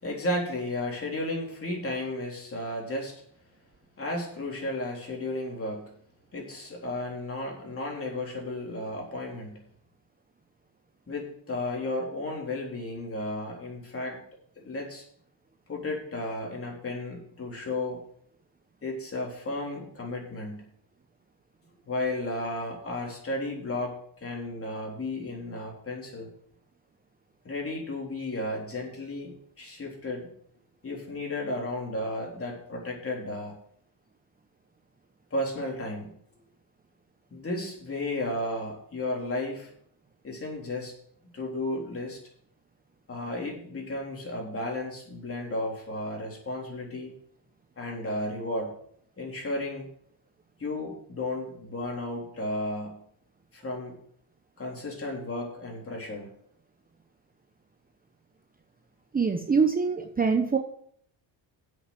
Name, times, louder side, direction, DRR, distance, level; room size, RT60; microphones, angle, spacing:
voice 1, 0.0-3.2 4.0-5.9 6.3-9.6 11.1-14.2 14.6-15.0 15.7-18.0 18.8-20.7 21.9-26.3 27.4-30.3 30.8-33.6 35.3-36.2 37.3-39.7 40.2-40.9 41.3-42.2 43.1-47.1 47.8-48.7 49.2-49.8 50.6-53.0 53.5-54.0 54.6-56.3, left 1 dB, 30° left, -1 dB, 3.8 m, -33 dB
voice 2, 59.1-60.6, right 5 dB, 20° right, 5 dB, 0.9 m, -24 dB
7.9 x 6.9 x 7.9 m, 0.64 s
cardioid pair, 115°, 46 cm